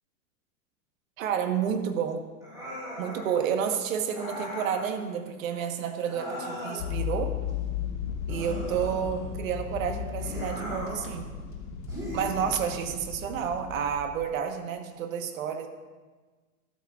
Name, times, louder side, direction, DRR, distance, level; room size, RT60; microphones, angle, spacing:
voice 1, 1.2-2.3 3.0-7.4 8.3-11.3 12.1-15.7, right 8 dB, 70° right, 6 dB, 1.3 m, -30 dB
sound 1, 2.4-3.3 4.1-4.8 6.0-7.0 8.3-9.4 10.2-11.1 11.9-12.9, equal, 10° right, 2.8 m, -38 dB
sound 2, 6.8-14.3, left 8 dB, 35° left, 1.2 m, -35 dB
13.0 x 12.0 x 2.4 m, 1.3 s
supercardioid pair, 170°, 42 cm